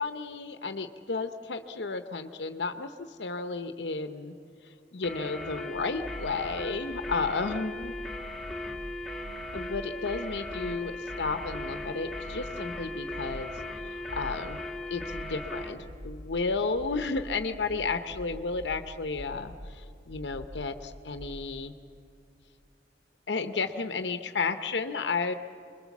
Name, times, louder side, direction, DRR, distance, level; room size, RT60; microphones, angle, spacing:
voice 1, 0.0-2.9 3.2-4.3 4.9-7.9 9.5-10.9 11.2-13.5 13.8-14.6 14.9-21.7 23.3-25.3, left 4 dB, 80° left, 8 dB, 0.9 m, -32 dB
sound 1, 5.0-15.8, left 1 dB, ahead, 1.7 m, -38 dB
sound 2, 5.7-21.6, equal, 65° right, 2.4 m, -45 dB
27.0 x 22.0 x 7.3 m, 2.4 s
head